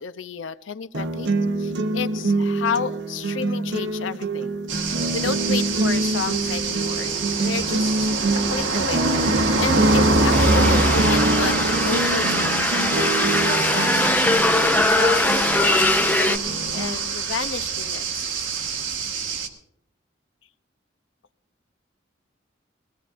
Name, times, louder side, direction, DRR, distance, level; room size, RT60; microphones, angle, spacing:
voice 1, 0.0-4.6 5.1-8.1 8.5-14.2 14.9-18.3, left 6 dB, 85° left, 12 dB, 0.6 m, -32 dB
sound 1, 0.9-16.9, right 2 dB, 65° right, 0.8 m, -26 dB
sound 2, 4.7-19.5, right 3 dB, 85° right, 1.5 m, -25 dB
sound 3, 10.3-16.4, left 2 dB, 10° left, 0.5 m, -21 dB
21.0 x 16.0 x 2.5 m, 0.74 s
head